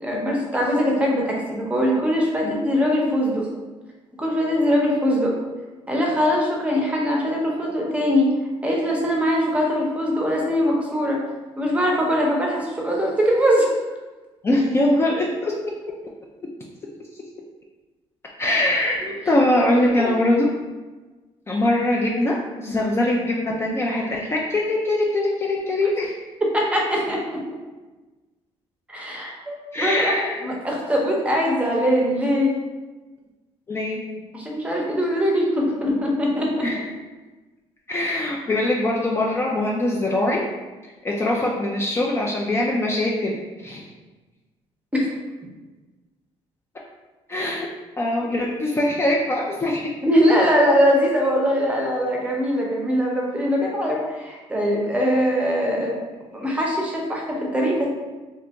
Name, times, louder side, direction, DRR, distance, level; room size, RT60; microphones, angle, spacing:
voice 1, 0.0-3.5 4.2-5.4 5.9-8.3 8.6-11.2 11.6-13.7 19.0-19.2 20.0-20.2 26.5-27.2 28.9-30.1 30.4-32.5 34.3-36.7 44.9-45.1 50.0-56.0 56.3-57.9, equal, 10° right, -2 dB, 0.7 m, -21 dB
voice 2, 14.4-15.5 18.4-19.0 19.3-20.5 21.5-26.1 29.7-30.5 33.7-34.0 36.6-36.8 37.9-40.4 40.8-43.9 47.3-47.7 48.0-49.9, left 1 dB, 20° left, -3 dB, 0.4 m, -22 dB
2.8 x 2.5 x 3.4 m, 1.2 s
cardioid pair, 115°, 11 cm